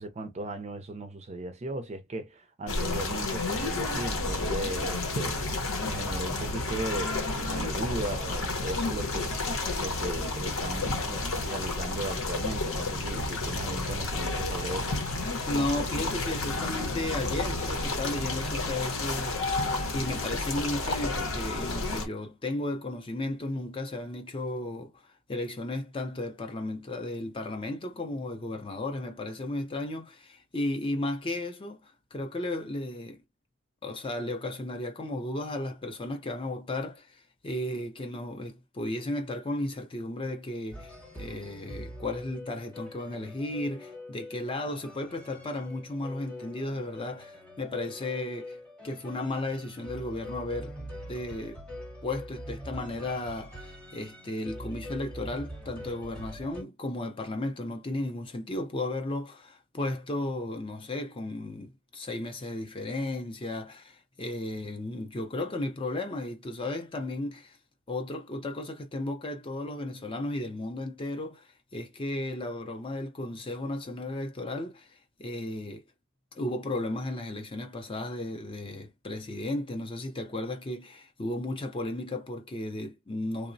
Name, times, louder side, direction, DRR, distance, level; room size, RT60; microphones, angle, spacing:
voice 1, 0.0-15.0, right 2 dB, 30° right, 0.4 m, -37 dB
sound 1, 2.7-22.1, left 2 dB, 70° left, 0.8 m, -31 dB
voice 2, 15.5-19.5 19.9-33.2 33.8-48.6 48.8-50.8 51.1-51.6 52.0-67.6 67.9-75.8 76.3-83.5, left 1 dB, 25° left, 0.4 m, -34 dB
sound 2, 40.7-56.6, left 1 dB, 5° left, 0.8 m, -43 dB
3.0 x 2.0 x 2.6 m
head